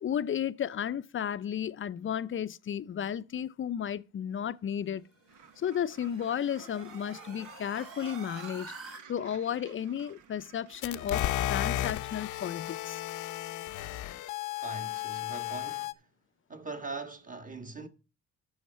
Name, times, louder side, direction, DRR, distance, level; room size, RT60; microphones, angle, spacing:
voice 1, 0.0-5.0 5.6-8.7 9.1-13.0, left 9 dB, 45° left, 0.5 m, -33 dB
sound 1, 5.0-9.0, right 3 dB, 45° right, 4.9 m, -48 dB
Gull seagull, 5.3-11.1, right 7 dB, 75° right, 1.1 m, -53 dB
sound 2, 10.8-15.9, left 13 dB, 80° left, 0.7 m, -34 dB
voice 2, 14.6-15.9 16.5-17.9, right 3 dB, 25° right, 1.7 m, -41 dB
9.7 x 6.5 x 5.6 m
cardioid pair, 90°, 30 cm